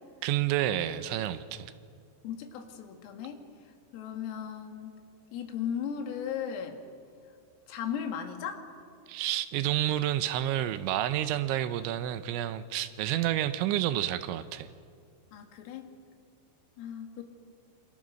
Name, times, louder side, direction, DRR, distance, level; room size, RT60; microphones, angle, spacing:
voice 1, 0.2-1.7 9.1-14.7, right 12 dB, 80° right, 12 dB, 3.0 m, -29 dB
voice 2, 2.2-3.4 3.9-5.0 5.3-6.8 7.7-8.6 15.3-15.9 16.8-17.2, left 8 dB, 85° left, 4 dB, 4.5 m, -36 dB
27.5 x 27.0 x 6.4 m, 2.3 s
omnidirectional pair, 5.8 m